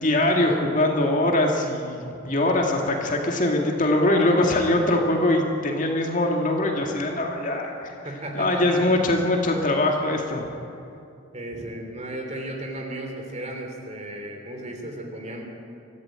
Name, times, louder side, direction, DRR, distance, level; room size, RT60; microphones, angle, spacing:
voice 1, 0.0-7.9 8.3-10.5, left 1 dB, 35° left, 1 dB, 2.4 m, -22 dB
voice 2, 8.0-9.0 11.3-15.4, right 1 dB, 30° right, 2 dB, 3.2 m, -35 dB
24.0 x 15.0 x 8.9 m, 2.6 s
head